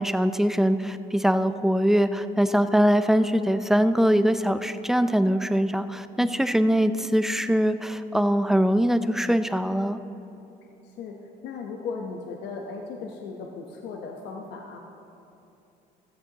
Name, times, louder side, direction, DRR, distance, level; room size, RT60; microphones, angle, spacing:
voice 1, 0.0-10.0, equal, ahead, 10 dB, 0.5 m, -22 dB
voice 2, 10.8-11.2 11.4-14.8, left 4 dB, 85° left, 1 dB, 1.0 m, -36 dB
16.0 x 13.5 x 2.9 m, 2.8 s
cardioid pair, 100°, 17 cm